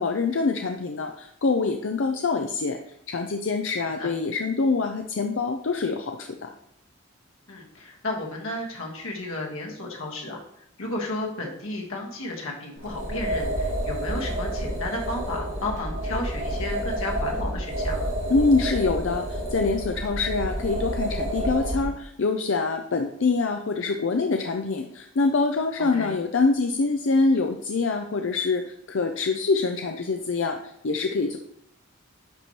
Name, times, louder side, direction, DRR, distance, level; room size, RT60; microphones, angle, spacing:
voice 1, 0.0-2.8 3.1-6.5 18.3-30.6 30.8-31.4, left 4 dB, 65° left, 5 dB, 0.5 m, -25 dB
voice 2, 7.5-10.4 10.8-18.1 25.9-26.1, left 2 dB, 85° left, -1 dB, 1.7 m, -33 dB
sound 1, 12.8-21.9, right 1 dB, 75° right, 2.7 m, -29 dB
10.5 x 4.3 x 3.2 m, 0.72 s
head